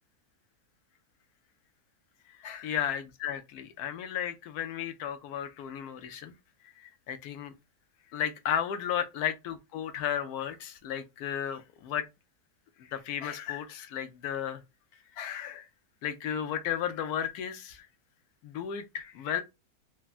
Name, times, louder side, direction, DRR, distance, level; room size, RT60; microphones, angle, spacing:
voice 1, 2.4-6.3 6.8-7.5 8.1-12.0 12.8-14.6 15.2-15.7 16.0-17.9 18.4-19.4, left 9 dB, 75° left, 1.0 m, -34 dB
3.3 x 2.1 x 2.3 m
omnidirectional pair, 1.7 m